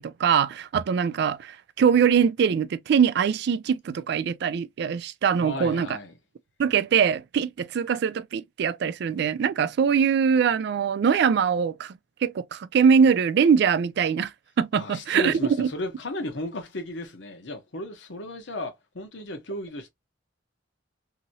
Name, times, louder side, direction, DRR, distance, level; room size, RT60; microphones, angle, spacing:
voice 1, 0.0-6.0 6.6-11.9 12.2-14.3 14.6-15.7, right 7 dB, 60° right, 0.3 m, -22 dB
voice 2, 5.4-6.1 14.7-19.9, left 1 dB, 70° left, 0.9 m, -35 dB
2.8 x 2.7 x 2.6 m
head